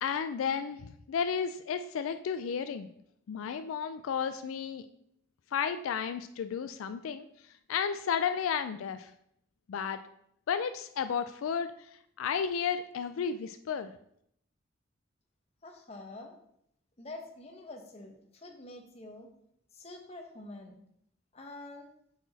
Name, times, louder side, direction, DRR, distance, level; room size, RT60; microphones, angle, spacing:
voice 1, 0.0-2.9 3.3-4.8 5.5-7.3 7.7-9.1 9.7-10.0 10.5-11.7 12.2-13.9, left 7 dB, 80° left, 10 dB, 0.3 m, -32 dB
voice 2, 15.6-16.4 17.0-19.3 19.7-20.8 21.3-21.9, left 2 dB, 30° left, 3 dB, 0.9 m, -46 dB
5.9 x 4.6 x 4.0 m, 0.71 s
head